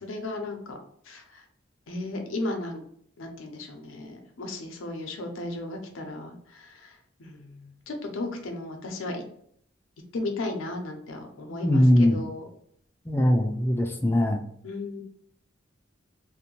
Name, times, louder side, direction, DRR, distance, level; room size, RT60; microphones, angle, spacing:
voice 1, 0.0-0.8 1.1-1.4 1.9-2.8 3.2-6.9 7.2-7.5 7.9-9.2 10.1-12.4 14.6-15.0, left 2 dB, 85° left, 4 dB, 0.6 m, -35 dB
voice 2, 11.6-12.2 13.1-14.4, left 1 dB, 10° left, 3 dB, 0.3 m, -21 dB
2.5 x 2.1 x 2.9 m, 0.66 s
head